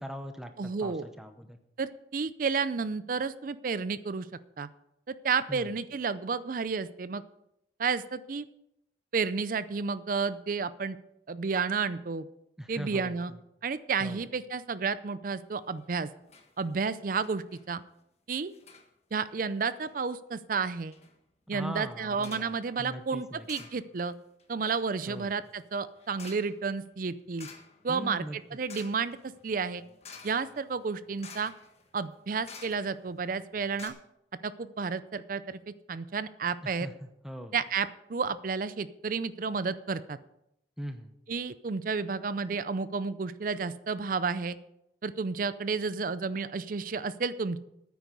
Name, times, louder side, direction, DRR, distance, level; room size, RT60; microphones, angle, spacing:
voice 1, 0.0-1.6 5.5-5.7 12.6-13.1 14.0-14.2 21.5-22.5 22.8-23.5 25.1-25.3 27.9-28.4 36.6-37.5 40.8-41.1, equal, 5° right, 7 dB, 0.7 m, -40 dB
voice 2, 0.6-1.1 1.8-4.3 4.6-4.7 5.1-7.2 7.8-8.4 9.1-11.0 11.3-12.3 12.7-13.3 13.6-16.1 16.6-17.8 18.3-18.5 19.1-21.0 21.5-24.1 24.5-27.5 27.8-29.8 30.2-31.5 31.9-33.9 34.4-36.9 37.5-40.2 41.3-44.6 45.0-47.6, right 5 dB, 50° right, 15 dB, 0.5 m, -31 dB
sound 1, 15.6-16.0 16.3-16.5 16.8-16.9 17.2-17.7 18.5-18.9 19.6-20.0 20.5-20.6 20.9-21.1 22.2-22.6 23.4-24.1 24.4-33.2 33.5-33.6 33.7-33.9, left 5 dB, 35° left, 1.4 m, -51 dB
9.4 x 9.2 x 6.7 m, 0.82 s
head